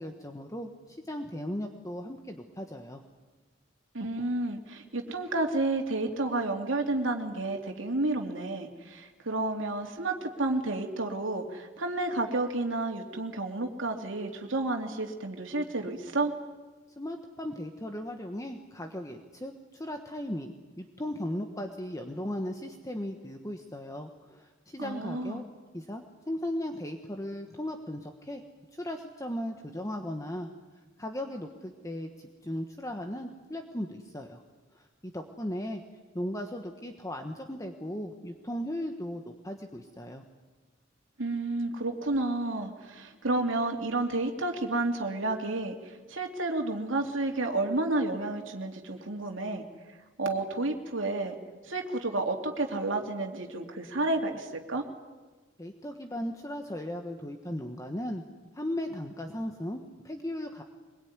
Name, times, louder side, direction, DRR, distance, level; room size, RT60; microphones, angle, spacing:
voice 1, 0.0-3.0 17.0-25.4 25.7-28.4 28.7-30.5 31.0-34.4 34.7-35.8 36.1-40.2 55.6-58.2 58.5-60.6, left 1 dB, 15° left, 5 dB, 1.4 m, -37 dB
voice 2, 3.9-16.3 24.8-25.4 41.2-49.6 50.2-51.4 51.6-54.8, right 2 dB, 80° right, 3 dB, 2.8 m, -31 dB
23.5 x 22.0 x 9.7 m, 1.3 s
head